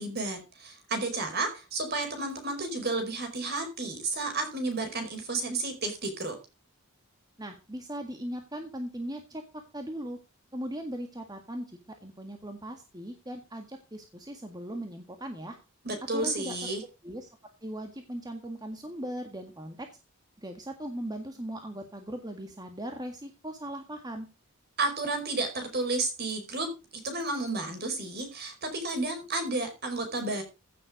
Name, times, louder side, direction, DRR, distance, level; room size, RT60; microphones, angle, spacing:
voice 1, 0.0-6.4 15.8-16.8 24.8-30.4, right 2 dB, 50° right, 6 dB, 5.0 m, -32 dB
voice 2, 7.4-10.2 10.5-15.6 16.1-16.7 17.0-17.3 17.6-19.9 20.4-24.3, right 1 dB, 20° right, 5 dB, 1.7 m, -39 dB
15.5 x 7.7 x 5.0 m, 0.30 s
head